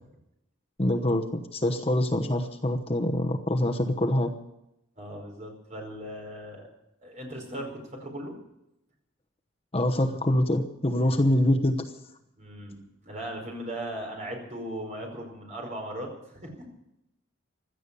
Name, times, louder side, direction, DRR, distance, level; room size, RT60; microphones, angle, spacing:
voice 1, 0.8-4.3 9.7-11.9, left 1 dB, 30° left, 4 dB, 1.0 m, -25 dB
voice 2, 5.0-6.7 7.0-8.4 11.0-11.4 12.4-16.7, right 1 dB, 35° right, 2 dB, 5.0 m, -38 dB
16.5 x 12.5 x 6.9 m, 0.85 s
head